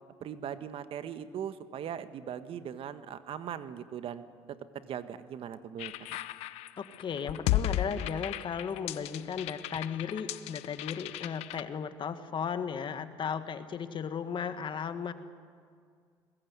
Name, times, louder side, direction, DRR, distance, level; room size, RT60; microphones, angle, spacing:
voice 1, 0.2-5.9, right 9 dB, 60° right, 11 dB, 1.5 m, -40 dB
sound 1, 5.8-11.6, left 13 dB, 80° left, 0.9 m, -35 dB
voice 2, 6.8-15.1, left 7 dB, 50° left, 10 dB, 1.9 m, -35 dB
21.5 x 20.5 x 9.5 m, 2.1 s
supercardioid pair, 75°, 11 cm